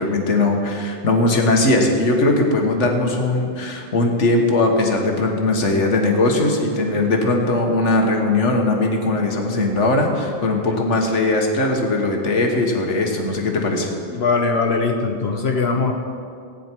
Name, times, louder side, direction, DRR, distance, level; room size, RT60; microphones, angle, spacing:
voice 1, 0.0-13.9, left 2 dB, 90° left, 2 dB, 1.7 m, -19 dB
voice 2, 14.1-15.9, left 4 dB, 65° left, 3 dB, 1.1 m, -21 dB
16.0 x 9.4 x 4.5 m, 2.4 s
omnidirectional pair, 1.2 m